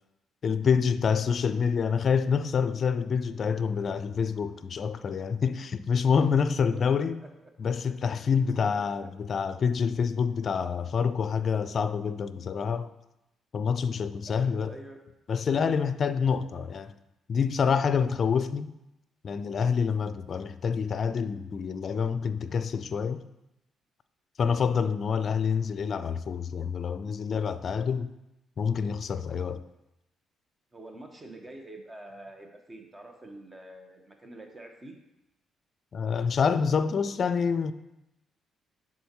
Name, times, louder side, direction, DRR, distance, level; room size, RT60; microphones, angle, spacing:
voice 1, 0.4-7.2 7.6-12.9 13.5-14.8 15.3-16.9 17.3-18.7 19.2-23.2 24.4-28.1 28.6-29.6 35.9-37.7, left 6 dB, 55° left, 0.4 m, -27 dB
voice 2, 8.5-9.1 14.3-15.0 30.7-35.0, right 2 dB, 30° right, 1.2 m, -46 dB
11.0 x 3.9 x 3.1 m
supercardioid pair, 55°, 0 cm